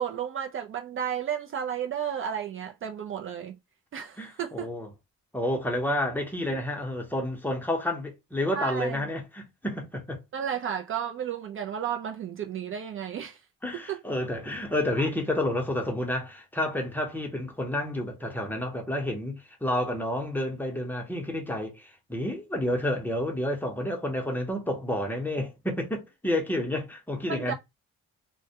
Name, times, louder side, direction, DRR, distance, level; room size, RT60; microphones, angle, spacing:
voice 1, 0.0-3.6 3.9-4.7 8.6-9.0 10.3-13.4 13.7-14.0 27.3-27.5, right 8 dB, 45° right, 0.4 m, -32 dB
voice 2, 4.2-4.9 5.3-10.2 13.6-27.5, left 1 dB, 5° left, 0.7 m, -30 dB
2.1 x 2.1 x 2.8 m
cardioid pair, 90°, 30 cm